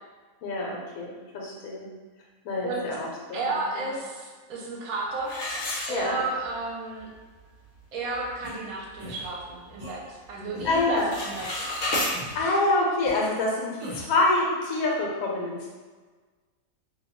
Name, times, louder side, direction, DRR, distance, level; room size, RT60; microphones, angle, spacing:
voice 1, 0.4-1.9 2.4-3.5 3.8-3.9 5.9-6.2 10.6-11.1 12.3-15.7, left 2 dB, 85° left, -2 dB, 1.1 m, -26 dB
voice 2, 3.3-5.3 5.9-7.1 7.9-12.0, right 3 dB, 80° right, -2 dB, 1.1 m, -33 dB
sound 1, 5.3-6.5 7.0-7.1 7.6-7.7 8.1-8.4 8.9-10.0 10.3-10.6 10.9-12.1, left 1 dB, 65° left, 0.9 m, -31 dB
sound 2, 8.4-8.5 9.0-9.3 9.8-9.9 10.5-10.9 11.4-11.5 12.1-12.5 13.0-13.2 13.8-14.2, right 1 dB, 45° right, 0.4 m, -40 dB
2.6 x 2.2 x 2.9 m, 1.4 s
omnidirectional pair, 1.5 m